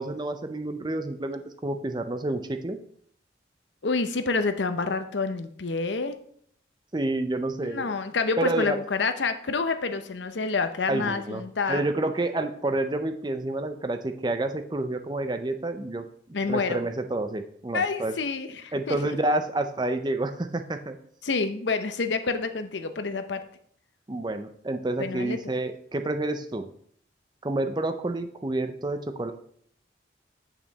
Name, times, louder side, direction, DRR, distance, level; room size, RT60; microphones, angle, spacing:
voice 1, 0.0-2.8 6.9-7.9 8.4-8.8 10.9-11.4 11.7-16.0 16.5-18.1 18.7-21.0 24.1-26.7 27.4-29.3, right 2 dB, 25° right, 8 dB, 0.5 m, -29 dB
voice 2, 3.8-6.2 7.6-11.9 16.3-16.8 17.7-19.2 21.2-23.4 25.0-25.5, left 4 dB, 75° left, 9 dB, 0.7 m, -28 dB
8.6 x 5.9 x 4.0 m, 0.63 s
head